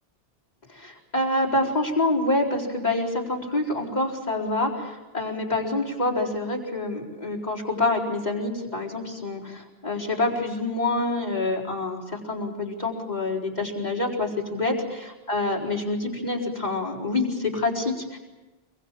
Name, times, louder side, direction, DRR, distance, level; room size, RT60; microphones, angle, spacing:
voice 1, 0.7-18.2, left 2 dB, 40° left, -3 dB, 4.6 m, -27 dB
25.0 x 23.0 x 7.6 m, 1.2 s
omnidirectional pair, 1.1 m